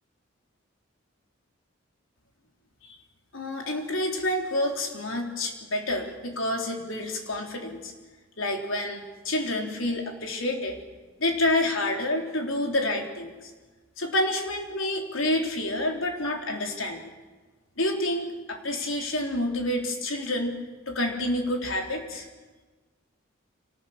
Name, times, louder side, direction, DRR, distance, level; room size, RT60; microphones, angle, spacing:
voice 1, 3.3-7.9 8.4-10.8 11.2-13.5 14.0-17.1 17.8-20.5 20.9-22.3, left 1 dB, 80° left, 2 dB, 3.8 m, -28 dB
25.5 x 19.5 x 7.4 m, 1.3 s
head